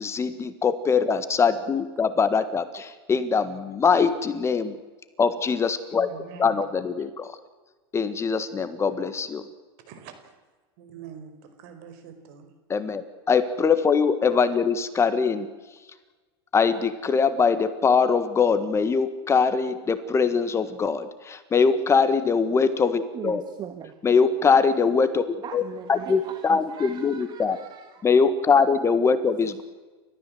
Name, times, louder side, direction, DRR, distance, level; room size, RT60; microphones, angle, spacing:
voice 1, 0.0-4.8 5.2-6.1 6.4-7.4 7.9-9.5 12.7-15.5 16.5-23.4 24.0-25.2 25.5-25.6 25.9-27.6 28.0-29.6, left 5 dB, 20° left, 11 dB, 1.6 m, -22 dB
voice 2, 5.9-6.8 9.9-10.3 10.8-12.5, right 7 dB, 60° right, 8 dB, 5.0 m, -44 dB
voice 3, 23.1-24.0 25.4-28.1, right 9 dB, 35° right, 8 dB, 1.7 m, -40 dB
30.0 x 14.5 x 7.9 m, 1.3 s
supercardioid pair, 120°, 13 cm